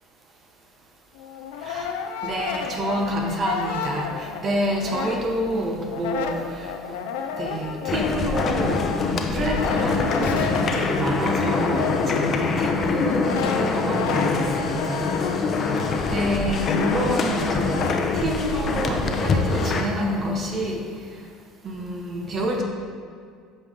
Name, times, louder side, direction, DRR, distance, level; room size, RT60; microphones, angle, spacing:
Brass instrument, 1.1-5.6 5.8-18.0, left 6 dB, 85° left, 0.5 m, -32 dB
voice 1, 2.2-6.7 7.3-8.8 9.1-15.1 15.6-15.7 16.1-20.8 21.6-22.6, right 1 dB, 40° right, 1 dB, 1.1 m, -28 dB
sound 1, 7.9-19.8, left 4 dB, 40° left, 0.7 m, -24 dB
8.4 x 5.5 x 3.6 m, 2.2 s
supercardioid pair, 90°, 0 cm